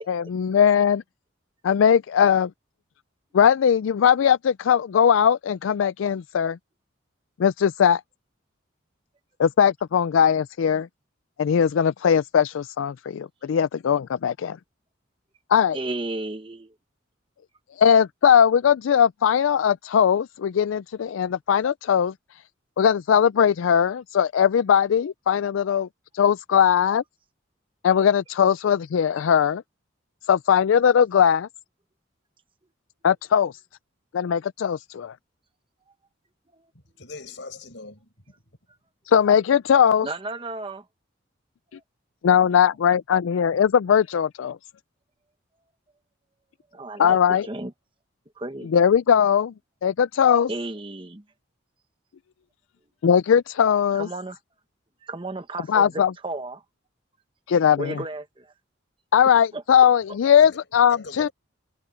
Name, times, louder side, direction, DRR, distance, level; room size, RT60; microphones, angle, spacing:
voice 1, 0.1-1.0 1.6-2.5 3.3-6.6 7.4-8.0 9.4-10.9 11.4-14.6 15.5-15.8 17.8-22.1 22.8-25.9 26.1-27.0 27.8-29.6 30.3-31.5 33.0-33.5 34.1-35.1 39.1-40.1 42.2-44.6 47.0-47.5 48.7-49.5 49.8-50.5 53.0-54.1 55.7-56.1 57.5-58.0 59.1-61.3, left 8 dB, 80° left, 0.4 m, -19 dB
voice 2, 15.7-16.7 40.0-40.8 46.7-47.7 48.4-48.7 50.5-51.2 53.9-54.4 55.0-56.6 57.8-58.5 59.5-59.6, right 2 dB, 25° right, 1.1 m, -33 dB
voice 3, 37.0-38.3 60.4-60.6 60.9-61.3, left 3 dB, 60° left, 6.6 m, -40 dB
head